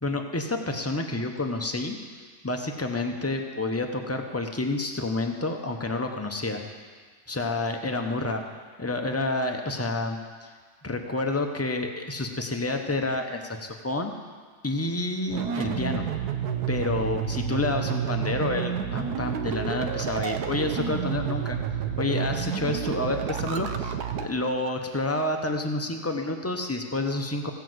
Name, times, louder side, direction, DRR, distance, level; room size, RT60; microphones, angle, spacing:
voice 1, 0.0-6.6 7.3-8.4 8.8-10.5 10.8-14.1 14.6-16.1 16.7-21.6 22.0-27.5, left 2 dB, 15° left, 3 dB, 0.6 m, -29 dB
sound 1, 15.3-24.3, right 8 dB, 85° right, 1.3 m, -30 dB
16.5 x 5.7 x 7.8 m, 1.5 s
omnidirectional pair, 1.6 m